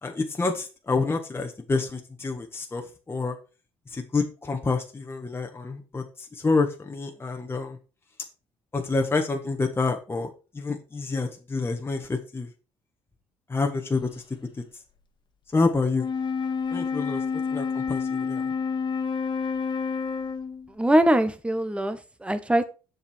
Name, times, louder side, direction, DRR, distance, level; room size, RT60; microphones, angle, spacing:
voice 1, 0.0-3.4 3.9-7.8 8.7-12.5 13.5-14.2 15.5-16.1 16.7-17.2 17.5-18.5, left 3 dB, 20° left, 1.4 m, -28 dB
Wind instrument woodwind instrument, 15.9-20.7, left 5 dB, 45° left, 1.5 m, -29 dB
voice 2, 20.7-22.7, right 1 dB, 10° right, 1.1 m, -22 dB
7.1 x 5.4 x 4.5 m
supercardioid pair, 75°, 11 cm